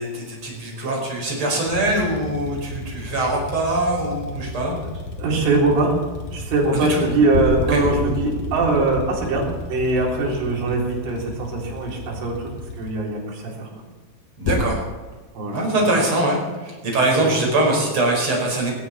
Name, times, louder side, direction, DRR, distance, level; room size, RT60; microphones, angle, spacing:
voice 1, 0.0-4.8 6.7-7.0 7.7-7.8 14.4-14.8 15.5-18.7, right 2 dB, 25° right, -1 dB, 5.4 m, -22 dB
sound 1, 1.6-12.9, left 2 dB, 50° left, 2.3 m, -35 dB
sound 2, 5.1-5.3 7.3-11.7 14.4-14.7, left 2 dB, 65° left, 2.1 m, -28 dB
voice 2, 5.2-5.9 6.3-12.5 12.8-13.7 15.4-15.6 17.1-17.3, right 3 dB, 80° right, -3 dB, 6.3 m, -22 dB
18.5 x 17.0 x 4.3 m, 1.2 s
omnidirectional pair, 5.6 m